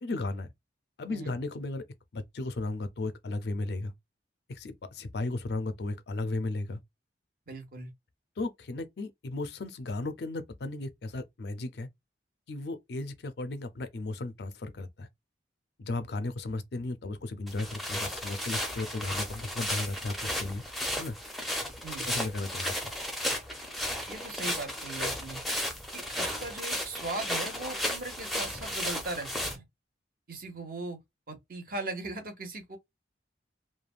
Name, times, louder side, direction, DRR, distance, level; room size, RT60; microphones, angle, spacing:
voice 1, 0.0-0.5 1.0-1.9 2.1-3.9 4.5-6.8 8.4-11.9 12.5-15.1 15.8-20.6 21.0-21.2 22.1-22.9, left 2 dB, 60° left, 0.4 m, -35 dB
voice 2, 7.5-7.9 21.8-22.1 24.1-25.4 25.9-29.6 30.3-31.0 31.3-32.8, right 2 dB, 50° right, 0.9 m, -39 dB
sound 1, 17.5-29.6, equal, ahead, 0.6 m, -34 dB
3.2 x 2.2 x 2.4 m
head